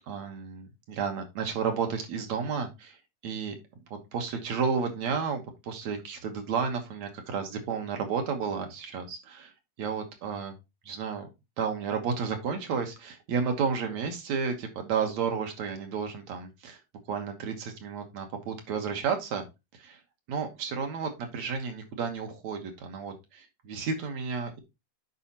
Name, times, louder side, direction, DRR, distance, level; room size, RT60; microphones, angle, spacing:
voice 1, 0.1-3.0 3.2-3.6 3.9-9.5 9.8-10.5 10.9-11.3 11.6-16.8 17.1-19.5 19.7-20.0 20.3-24.6, right 6 dB, 65° right, 4 dB, 2.4 m, -32 dB
10.5 x 4.9 x 2.9 m, 0.23 s
omnidirectional pair, 3.7 m